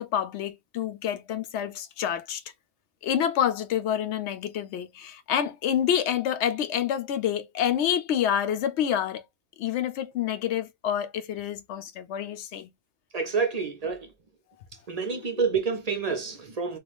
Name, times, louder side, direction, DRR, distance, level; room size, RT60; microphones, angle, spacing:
voice 1, 0.0-2.4 3.0-9.3 9.6-12.7 15.1-15.4, left 9 dB, 75° left, 0.9 m, -28 dB
voice 2, 13.1-14.1 14.9-16.8, right 5 dB, 45° right, 0.6 m, -28 dB
3.2 x 2.4 x 2.3 m
omnidirectional pair, 1.2 m